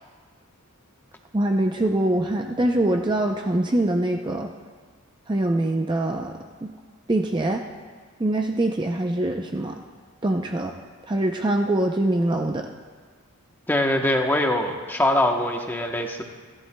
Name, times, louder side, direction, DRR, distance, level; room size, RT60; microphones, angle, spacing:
voice 1, 1.3-4.5 5.3-6.7 7.1-7.6 8.2-9.8 10.2-10.7 11.1-12.7, right 1 dB, 20° right, 3 dB, 0.5 m, -23 dB
voice 2, 13.7-16.2, left 1 dB, 10° left, 2 dB, 0.9 m, -23 dB
29.0 x 11.0 x 2.2 m, 1.5 s
head